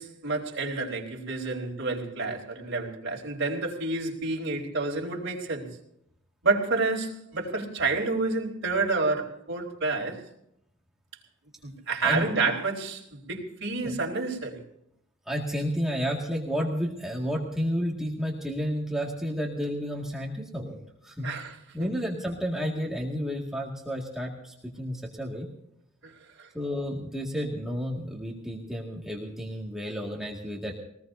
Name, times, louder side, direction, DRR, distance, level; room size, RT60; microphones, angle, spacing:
voice 1, 0.0-5.7 6.4-10.2 11.6-14.6 21.2-21.5 21.8-21.9 26.0-26.1 26.4-26.5, right 3 dB, 60° right, 4.2 m, -29 dB
voice 2, 15.3-20.8 21.0-21.3 21.7-25.5 26.5-30.8, equal, ahead, 2.0 m, -31 dB
22.0 x 19.0 x 2.7 m
head